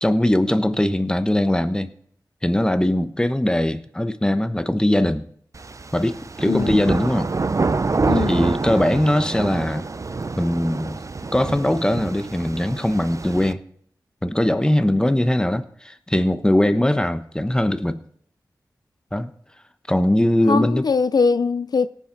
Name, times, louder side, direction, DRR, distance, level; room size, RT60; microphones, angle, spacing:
voice 1, 0.0-1.9 2.4-5.3 5.9-7.3 8.3-9.9 10.4-11.0 11.3-13.6 14.2-18.0 19.1-19.3 19.9-20.9, left 1 dB, 10° left, 1.0 m, -20 dB
sound 1, 5.5-13.5, right 3 dB, 45° right, 0.6 m, -27 dB
voice 2, 6.4-6.8 8.1-8.5 20.5-21.9, left 4 dB, 65° left, 0.4 m, -21 dB
17.5 x 7.4 x 4.0 m
cardioid pair, 45°, 7 cm